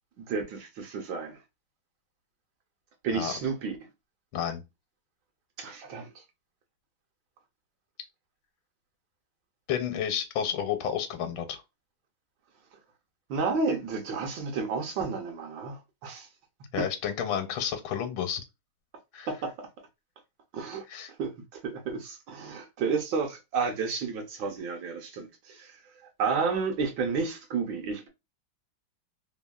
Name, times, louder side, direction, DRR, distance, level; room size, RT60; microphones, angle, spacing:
voice 1, 0.2-1.4 3.0-3.8 5.6-6.2 13.3-16.3 16.8-16.9 19.3-19.7 20.5-20.8 21.2-25.8 26.2-28.1, right 5 dB, 70° right, 1.3 m, -31 dB
voice 2, 9.7-11.6 16.7-18.4 19.1-19.3 20.9-21.1, left 8 dB, 80° left, 1.4 m, -31 dB
3.4 x 2.3 x 2.3 m
omnidirectional pair, 2.2 m